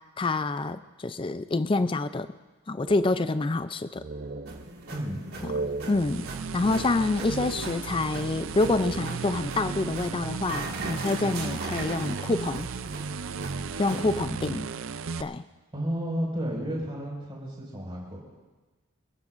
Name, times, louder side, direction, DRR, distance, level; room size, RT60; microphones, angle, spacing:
voice 1, 0.2-2.3 2.7-4.0 5.4-6.3 6.5-12.7 13.8-14.7 15.2-15.4, left 2 dB, 25° left, 12 dB, 0.4 m, -27 dB
sound 1, 2.9-3.7 4.0-4.9 5.3-8.1 8.4-9.4, right 3 dB, 45° right, 0.8 m, -38 dB
sound 2, 4.5-14.2, right 2 dB, 90° right, 3.1 m, -40 dB
voice 2, 4.9-5.2 13.9-14.0 15.7-18.2, equal, 25° right, -4 dB, 5.5 m, -32 dB
sound 3, 5.8-15.2, right 5 dB, 65° right, 0.5 m, -35 dB
30.0 x 14.5 x 2.6 m, 1.2 s
head